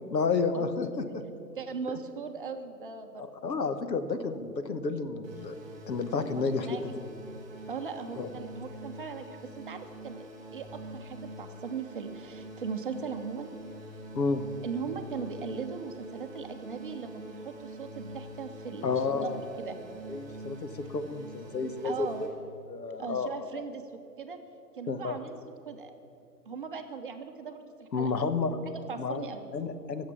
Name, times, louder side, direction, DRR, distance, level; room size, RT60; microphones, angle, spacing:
voice 1, 0.1-1.2 1.9-2.0 3.4-5.5 5.9-6.9 8.2-8.3 14.1-14.4 18.8-19.4 20.1-22.1 22.7-23.4 24.9-25.2 27.9-28.6 29.0-29.2 29.5-30.1, left 4 dB, 80° left, 9 dB, 1.2 m, -31 dB
voice 2, 1.5-3.5 6.2-6.3 6.6-6.8 7.7-13.5 14.6-19.8 21.8-22.3 23.0-23.8 24.2-24.4 24.7-25.4 25.7-26.0 26.5-28.1 28.7-29.5, right 5 dB, 35° right, 6 dB, 0.7 m, -39 dB
sound 1, 5.2-22.3, right 1 dB, 15° right, 2.3 m, -45 dB
16.0 x 7.3 x 6.1 m, 2.7 s
hypercardioid pair, 155°, 49 cm